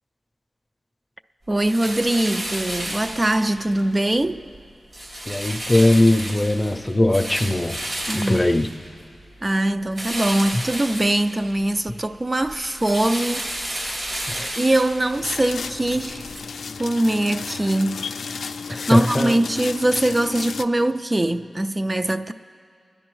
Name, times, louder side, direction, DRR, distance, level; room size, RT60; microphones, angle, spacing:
voice 1, 1.5-4.4 8.0-8.4 9.4-13.5 13.8-13.9 14.6-16.3 16.8-18.0 18.7-22.3, right 1 dB, 30° right, 0.3 m, -22 dB
sound 1, 1.6-3.8 4.2-4.6 4.9-9.2 9.9-11.8 12.1-16.4, right 1 dB, 75° right, 3.1 m, -32 dB
voice 2, 5.3-7.8 8.1-8.7 14.3-14.5 18.7-19.3, left 1 dB, 25° left, 0.5 m, -20 dB
sound 2, 15.1-20.6, left 5 dB, 90° left, 0.3 m, -33 dB
26.5 x 10.5 x 3.1 m
cardioid pair, 60°, 0 cm